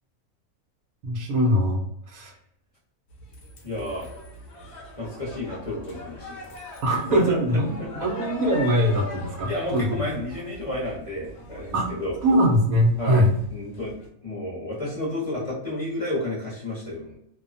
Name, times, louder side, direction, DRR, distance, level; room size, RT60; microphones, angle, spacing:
voice 1, 1.0-1.9 2.1-2.3 6.8-10.0 11.7-11.9 12.2-13.3, equal, 75° right, 1 dB, 1.1 m, -22 dB
sound 1, 3.1-14.1, left 1 dB, 60° left, 0.8 m, -42 dB
voice 2, 3.6-4.1 5.0-6.4 6.9-8.1 9.4-12.2 13.0-14.0 14.2-17.2, left 1 dB, 30° left, -6 dB, 0.8 m, -31 dB
2.7 x 2.2 x 2.5 m, 0.74 s
omnidirectional pair, 1.5 m